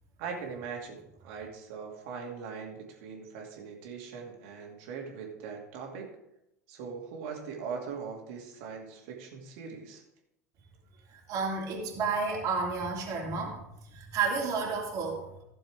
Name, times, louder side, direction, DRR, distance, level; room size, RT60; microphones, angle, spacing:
voice 1, 0.2-6.1 6.7-10.0, right 6 dB, 55° right, 1 dB, 2.5 m, -41 dB
voice 2, 11.1-13.6 13.9-15.4, right 4 dB, 40° right, -3 dB, 3.0 m, -31 dB
15.5 x 7.0 x 3.6 m, 0.83 s
figure-of-eight pair, 80°, 9 cm